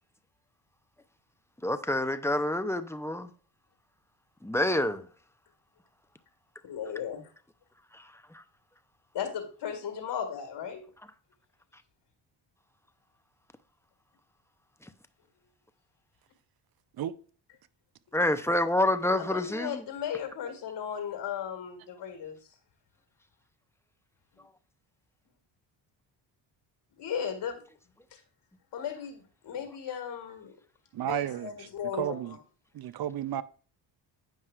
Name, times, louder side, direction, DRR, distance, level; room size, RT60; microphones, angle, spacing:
voice 1, 1.6-3.3 4.4-5.1 7.9-8.4 14.8-14.9 18.1-19.8, left 1 dB, 5° left, 0.5 m, -28 dB
voice 2, 6.6-7.2 9.1-10.8 19.3-22.4 27.0-27.6 28.1-28.2 28.7-30.5 31.1-32.4, left 8 dB, 60° left, 1.9 m, -36 dB
voice 3, 30.9-31.7 31.9-32.4 32.7-33.4, right 11 dB, 50° right, 0.6 m, -32 dB
9.2 x 5.5 x 2.4 m
cardioid pair, 75°, 47 cm